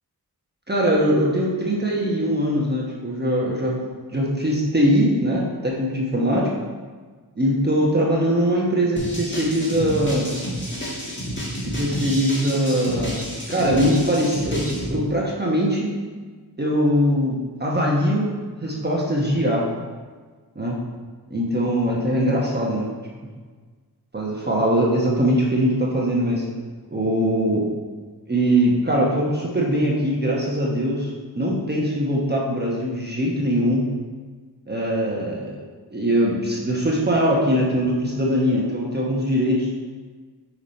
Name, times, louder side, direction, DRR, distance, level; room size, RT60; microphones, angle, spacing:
voice 1, 0.7-3.8 4.1-6.5 7.4-10.3 11.7-15.9 16.6-18.3 18.6-19.6 20.5-20.8 21.3-22.9 24.1-26.4 26.9-27.7 28.3-33.9 34.7-35.5 35.9-39.7, equal, 25° right, -4 dB, 1.1 m, -21 dB
sound 1, 9.0-14.9, equal, 30° left, 2.0 m, -30 dB
5.5 x 4.7 x 4.3 m, 1.5 s
wide cardioid pair, 70°, 38 cm